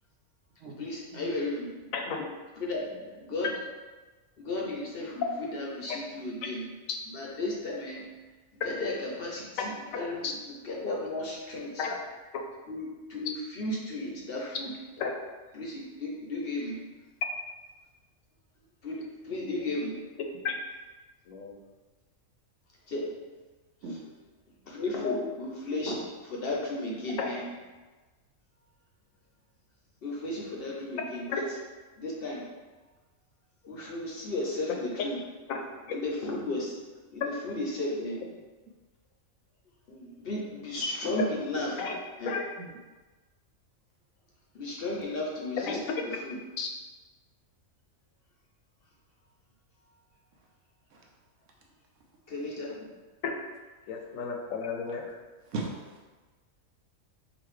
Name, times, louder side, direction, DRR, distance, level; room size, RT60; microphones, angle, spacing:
voice 1, 0.7-1.9 2.5-2.8 3.2-3.5 4.4-6.7 7.0-8.0 8.5-11.9 12.7-15.0 15.5-16.8 18.8-20.0 22.9-23.1 23.8-24.0 24.7-27.5 30.0-31.6 32.0-32.4 33.6-35.2 35.9-36.7 37.1-38.2 39.9-41.9 42.2-42.4 44.5-46.4 52.3-52.8, left 2 dB, 55° left, -2 dB, 0.7 m, -34 dB
voice 2, 1.9-2.2 5.9-6.0 10.2-10.3 11.8-11.9 12.3-12.4 15.0-15.1 20.4-20.5 21.3-21.6 25.0-25.3 27.2-27.3 31.3-31.4 35.5-35.6 35.9-36.0 41.2-41.3 41.8-42.0 42.3-42.4 45.6-45.7 46.6-46.7 53.2-53.3 53.9-55.1, left 5 dB, 80° left, 2 dB, 1.0 m, -32 dB
voice 3, 55.4-56.1, right 3 dB, 70° right, -1 dB, 0.9 m, -38 dB
4.9 x 2.6 x 3.2 m, 1.3 s
omnidirectional pair, 1.4 m